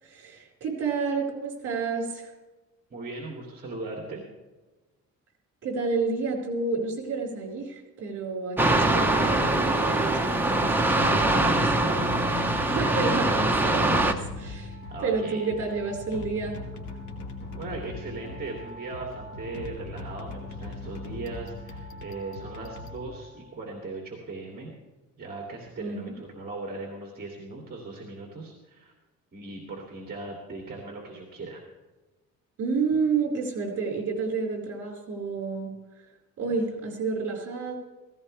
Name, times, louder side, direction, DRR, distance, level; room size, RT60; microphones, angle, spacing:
voice 1, 0.0-2.3 5.6-14.1 14.4-16.6 25.8-26.1 32.6-35.8 36.4-37.8, right 4 dB, 50° right, 0 dB, 4.7 m, -30 dB
voice 2, 2.9-4.2 14.9-15.4 17.5-24.7 25.2-28.9 29.3-31.6, right 3 dB, 30° right, 0 dB, 2.6 m, -38 dB
sound 1, 8.6-14.1, right 2 dB, 5° right, 0.9 m, -23 dB
sound 2, 10.5-23.6, left 2 dB, 75° left, 2.2 m, -40 dB
16.5 x 16.0 x 3.3 m, 1.1 s
cardioid pair, 155°, 31 cm